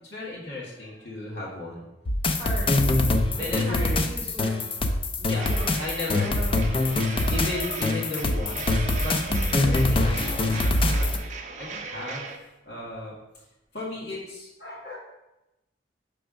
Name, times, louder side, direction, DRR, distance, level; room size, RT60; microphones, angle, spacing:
voice 1, 0.0-1.8 3.3-4.0 5.2-5.5 5.8-6.3 7.3-9.2 9.5-11.1 11.6-12.3 12.6-13.4 13.7-15.0, left 2 dB, 65° left, -5 dB, 1.7 m, -35 dB
sound 1, 2.1-11.2, left 2 dB, 30° left, 0.4 m, -24 dB
voice 2, 2.4-2.9 3.3-4.6 5.4-5.8 6.1-7.7 9.2-9.5, right 1 dB, 10° left, -7 dB, 1.8 m, -37 dB
sound 2, 5.4-12.4, right 4 dB, 40° right, 0.6 m, -38 dB
6.0 x 3.5 x 5.1 m, 0.97 s
head